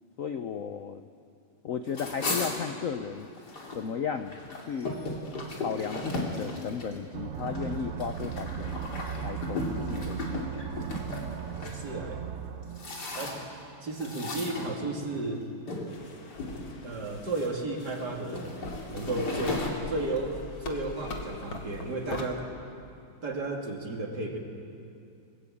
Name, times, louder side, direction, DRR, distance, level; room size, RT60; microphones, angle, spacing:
voice 1, 0.2-1.0 1.6-3.3 3.7-4.4 4.7-5.0 5.6-8.8 9.2-10.7, left 7 dB, 80° left, 7 dB, 0.7 m, -35 dB
sound 1, 1.9-3.8 4.2-11.8 12.4-13.6 14.0-15.2 15.7-15.9 16.3-17.1 17.7-19.7, left 2 dB, 50° left, 3.4 m, -36 dB
sound 2, 7.1-13.7, right 8 dB, 75° right, 0.7 m, -37 dB
voice 2, 11.6-12.2 13.1-13.4 13.8-15.4 16.8-22.5 23.2-24.4, right 2 dB, 50° right, 1 dB, 3.0 m, -33 dB
sound 3, 15.9-22.3, left 3 dB, 65° left, 2.8 m, -43 dB
22.0 x 20.5 x 8.6 m, 2.5 s
omnidirectional pair, 2.4 m